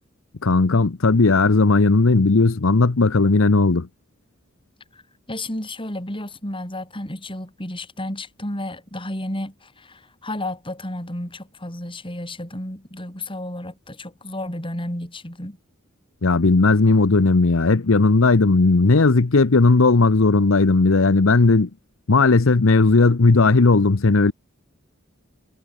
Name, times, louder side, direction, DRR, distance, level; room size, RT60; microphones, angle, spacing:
voice 1, 0.4-3.9 16.2-21.7 22.1-24.3, left 3 dB, 70° left, 0.8 m, -16 dB
voice 2, 5.3-15.6, left 1 dB, 25° left, 6.6 m, -32 dB
head